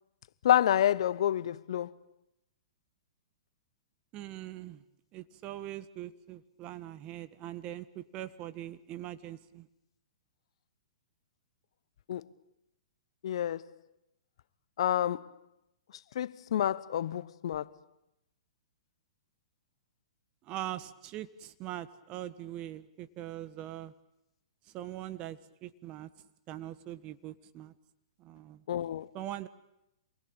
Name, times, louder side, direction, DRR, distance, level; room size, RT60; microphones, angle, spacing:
voice 1, 0.4-1.9 12.1-12.2 13.2-13.6 14.8-15.3 16.1-17.7 28.7-29.1, left 11 dB, 65° left, 0.9 m, -28 dB
voice 2, 4.1-4.8 5.1-9.7 20.4-23.9 24.7-26.1 26.5-27.7 28.2-28.6 29.1-29.5, right 13 dB, 35° right, 1.5 m, -42 dB
27.0 x 21.0 x 8.9 m
hypercardioid pair, 130°, 3 cm